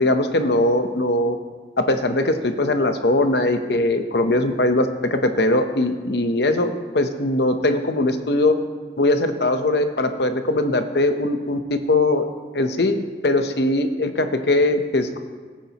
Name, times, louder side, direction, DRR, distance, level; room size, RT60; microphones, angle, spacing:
voice 1, 0.0-1.4 1.8-8.5 9.0-12.2 12.5-13.0 13.2-15.2, left 2 dB, 70° left, 7 dB, 0.9 m, -20 dB
18.5 x 8.9 x 3.0 m, 1.5 s
head